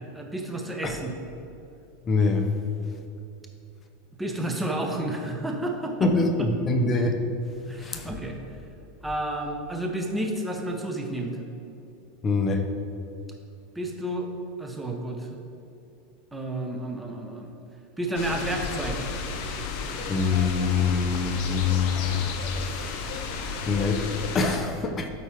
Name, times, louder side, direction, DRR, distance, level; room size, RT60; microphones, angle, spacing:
voice 1, 0.1-1.2 4.2-6.1 6.4-6.5 7.7-8.4 9.0-11.3 13.7-14.3 14.6-15.4 16.3-17.5 18.0-19.1, right 1 dB, 10° right, 2 dB, 1.0 m, -31 dB
voice 2, 2.1-2.5 6.0-7.2 7.8-8.1 12.2-12.6 20.1-22.2 23.7-24.1 24.3-25.1, left 4 dB, 25° left, 5 dB, 0.8 m, -24 dB
sound 1, 18.2-24.6, left 4 dB, 55° left, 0.8 m, -33 dB
12.5 x 4.4 x 3.6 m, 2.8 s
supercardioid pair, 135°, 0 cm